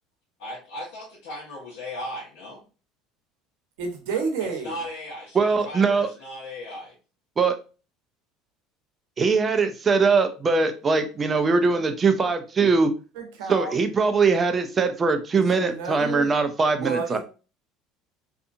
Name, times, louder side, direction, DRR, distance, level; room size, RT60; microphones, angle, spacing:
voice 1, 0.4-2.6 4.6-6.9, left 1 dB, 80° left, -6 dB, 1.0 m, -37 dB
voice 2, 3.8-4.8 13.2-13.8 15.5-16.3 16.8-17.2, right 5 dB, 85° right, 4 dB, 0.8 m, -30 dB
voice 3, 5.3-6.1 7.4-7.6 9.2-12.9 13.5-17.2, right 4 dB, 25° right, 8 dB, 0.4 m, -21 dB
2.7 x 2.4 x 2.5 m, 0.34 s
supercardioid pair, 115°, 0 cm